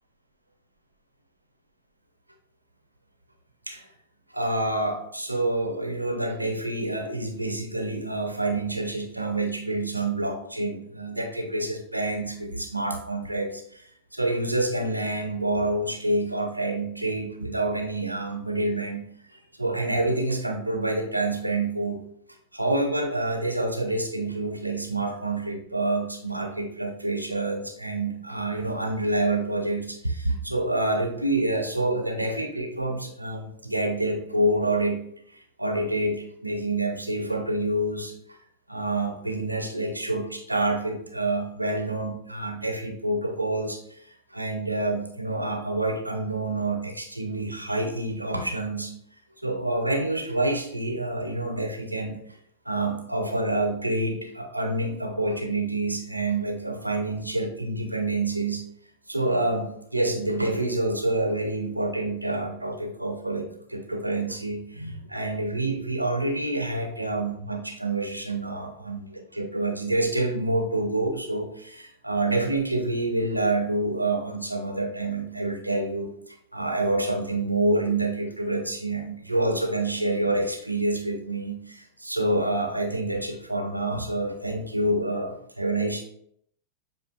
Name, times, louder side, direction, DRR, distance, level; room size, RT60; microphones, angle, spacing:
voice 1, 4.3-13.8 14.1-19.0 19.5-22.0 22.5-35.0 35.6-38.1 38.7-43.8 44.3-48.9 49.4-52.2 52.7-58.6 59.1-76.1 76.5-86.0, right 2 dB, 85° right, 4 dB, 0.6 m, -27 dB
7.2 x 2.5 x 2.3 m, 0.70 s
figure-of-eight pair, 90°, 0 cm